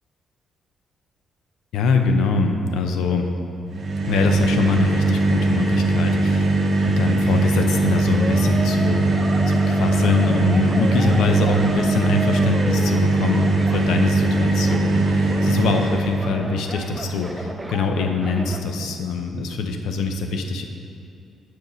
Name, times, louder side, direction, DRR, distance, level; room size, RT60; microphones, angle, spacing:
voice 1, 1.7-3.3 4.0-9.1 9.5-20.7, left 4 dB, 85° left, 5 dB, 0.6 m, -24 dB
sound 1, 3.7-16.3, right 2 dB, 50° right, 0.8 m, -20 dB
sound 2, 7.4-18.6, right 2 dB, 15° right, 0.5 m, -34 dB
7.2 x 4.7 x 5.4 m, 2.7 s
cardioid pair, 90°, 0 cm